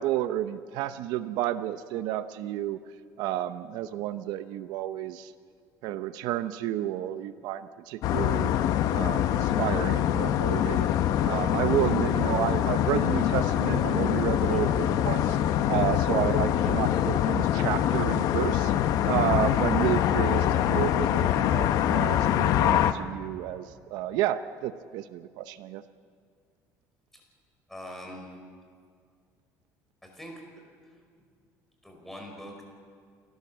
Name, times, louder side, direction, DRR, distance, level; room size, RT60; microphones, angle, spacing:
voice 1, 0.0-2.8 3.2-5.3 5.8-8.6 8.9-10.9 11.3-15.4 15.7-18.7 19.1-25.8, right 12 dB, 75° right, 11 dB, 0.7 m, -31 dB
sound 1, 8.0-22.9, left 11 dB, 60° left, 0.9 m, -24 dB
voice 2, 27.7-28.3 30.0-30.3 31.8-32.6, equal, 5° left, 1 dB, 5.1 m, -42 dB
29.0 x 12.0 x 7.4 m, 2.1 s
cardioid pair, 140°, 7 cm